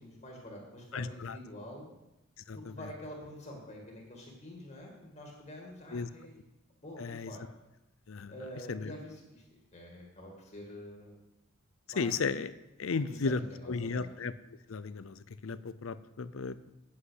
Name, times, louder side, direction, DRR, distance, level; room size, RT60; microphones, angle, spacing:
voice 1, 0.0-1.9 2.5-6.4 6.7-7.4 8.3-11.2 11.9-12.1 12.9-14.1, left 1 dB, 35° left, -1 dB, 2.2 m, -47 dB
voice 2, 0.9-1.4 2.5-2.7 5.9-6.1 7.0-7.3 8.1-8.3 8.7-8.9 12.0-12.5 12.8-13.4 13.7-14.3 14.7-16.7, left 4 dB, 75° left, 15 dB, 0.6 m, -34 dB
8.5 x 7.8 x 8.1 m, 0.96 s
head